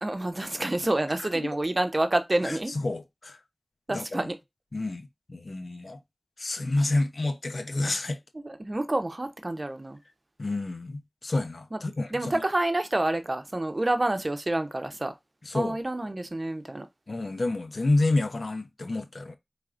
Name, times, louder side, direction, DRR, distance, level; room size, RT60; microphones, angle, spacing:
voice 1, 0.0-2.7 3.9-4.4 8.3-10.0 11.7-11.8 12.1-15.1 15.5-16.8, right 1 dB, 50° right, 0.8 m, -28 dB
voice 2, 1.2-1.5 2.4-3.4 3.9-4.3 4.7-5.0 5.3-6.0 6.4-8.2 10.4-12.4 15.4-15.8 17.1-19.4, left 2 dB, 90° left, 0.7 m, -29 dB
4.7 x 3.5 x 2.5 m
wide cardioid pair, 45°, 0 cm